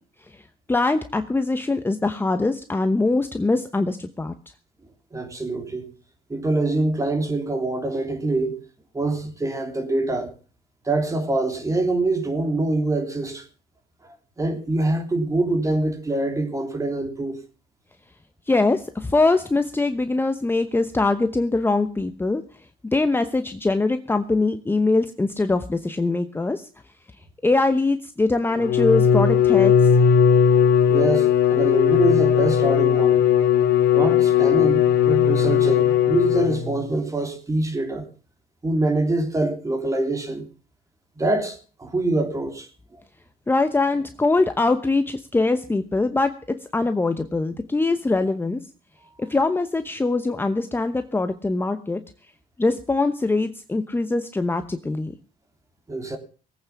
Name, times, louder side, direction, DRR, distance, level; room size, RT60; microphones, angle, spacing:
voice 1, 0.7-4.3 18.5-22.4 22.9-26.7 27.4-29.7 43.5-48.6 49.2-52.0 52.6-55.1, left 3 dB, 15° left, 1.0 m, -22 dB
voice 2, 5.1-5.8 6.3-8.6 8.9-10.3 10.8-13.4 14.0-17.4 30.9-33.2 33.9-38.1 38.6-40.4 41.2-42.7 55.9-56.2, right 2 dB, 20° right, 3.3 m, -25 dB
Bowed string instrument, 28.5-36.8, left 8 dB, 90° left, 3.2 m, -18 dB
18.5 x 8.9 x 7.2 m
cardioid pair, 110°, 17 cm